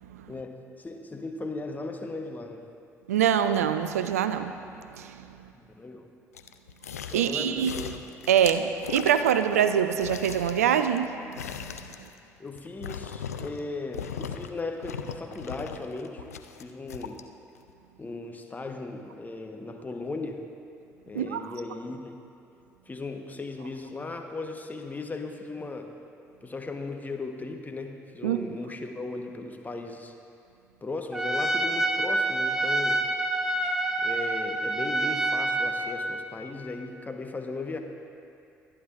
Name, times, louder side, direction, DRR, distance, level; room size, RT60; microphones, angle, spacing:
voice 1, 0.3-2.6 5.5-6.1 7.1-7.9 12.4-16.2 16.6-17.2 18.0-20.4 21.1-22.2 22.9-25.9 26.4-30.1 30.8-33.1 34.0-37.8, left 3 dB, 20° left, 4 dB, 1.1 m, -37 dB
voice 2, 3.1-5.3 7.1-7.7 8.3-11.3 21.1-21.5 28.2-28.4, right 9 dB, 75° right, 10 dB, 0.4 m, -24 dB
sound 1, 6.3-7.3 7.6-9.7 9.9-13.7 13.9-14.5 14.8-17.2 17.7-17.8, left 8 dB, 80° left, 0.4 m, -39 dB
Trumpet, 31.1-36.0, right 2 dB, 5° right, 1.0 m, -27 dB
23.0 x 9.7 x 2.5 m, 2.6 s
figure-of-eight pair, 50°, 8 cm